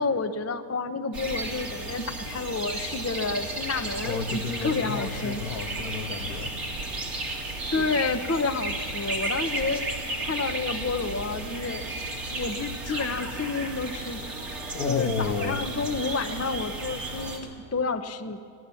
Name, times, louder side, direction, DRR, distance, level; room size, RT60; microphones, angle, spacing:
voice 1, 0.0-5.4 7.7-9.8 10.2-11.8 12.3-14.2 14.8-18.4, left 4 dB, 25° left, 9 dB, 0.3 m, -30 dB
sound 1, 1.1-17.4, right 2 dB, 65° right, 3.3 m, -34 dB
voice 2, 4.0-6.5 14.7-15.6, left 5 dB, 75° left, 5 dB, 1.8 m, -31 dB
24.0 x 16.5 x 7.1 m, 2.3 s
omnidirectional pair, 1.6 m